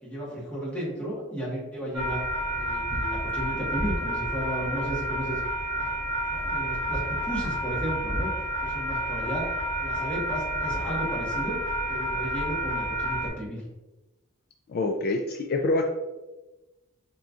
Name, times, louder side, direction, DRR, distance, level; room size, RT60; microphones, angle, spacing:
voice 1, 0.0-2.2 2.5-5.4 5.8-5.9 6.3-8.3 8.6-9.5 9.8-13.6, equal, 5° left, -7 dB, 1.4 m, -34 dB
sound 1, 1.9-13.3, right 1 dB, 35° left, 1.5 m, -30 dB
voice 2, 14.7-15.8, left 2 dB, 50° left, 3 dB, 0.3 m, -26 dB
4.3 x 3.8 x 2.4 m, 1.1 s
head